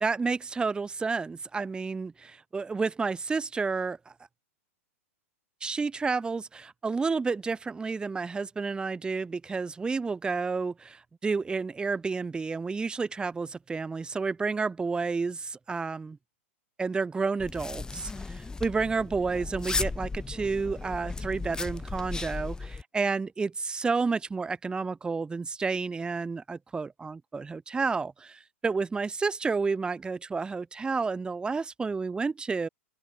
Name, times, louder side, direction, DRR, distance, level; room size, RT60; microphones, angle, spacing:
voice 1, 0.0-4.0 5.6-16.2 16.8-32.7, right 4 dB, 10° right, 1.2 m, -30 dB
sound 1, 17.4-22.8, left 3 dB, 10° left, 0.7 m, -35 dB
figure-of-eight pair, 100°, 8 cm